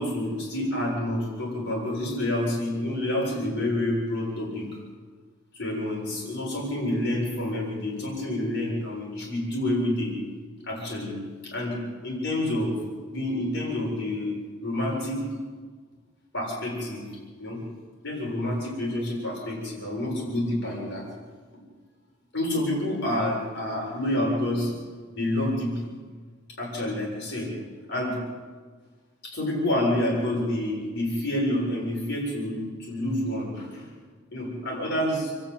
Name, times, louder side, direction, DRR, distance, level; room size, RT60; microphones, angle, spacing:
voice 1, 0.0-4.8 5.5-10.1 10.6-11.2 11.4-11.8 12.0-12.8 13.1-14.3 14.6-15.2 16.3-17.1 17.4-17.6 18.0-21.0 22.3-24.7 25.1-25.9 26.6-27.5 27.9-28.2 29.2-33.9 34.3-35.3, left 1 dB, 60° left, -3 dB, 7.4 m, -28 dB
28.5 x 13.0 x 9.3 m, 1.5 s
head